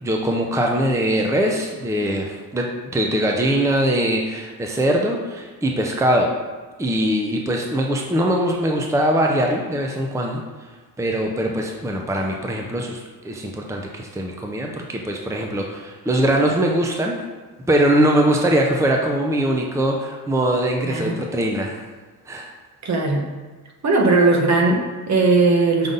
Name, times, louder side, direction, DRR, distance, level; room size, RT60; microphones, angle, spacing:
voice 1, 0.0-2.7 2.9-6.3 6.8-10.4 11.0-17.2 17.7-21.8 22.3-22.5, right 1 dB, 10° right, 1 dB, 0.7 m, -21 dB
voice 2, 20.8-21.2 22.8-23.3 23.8-25.9, right 3 dB, 45° right, 2 dB, 1.2 m, -18 dB
6.8 x 3.9 x 3.9 m, 1.4 s
cardioid pair, 85°, 38 cm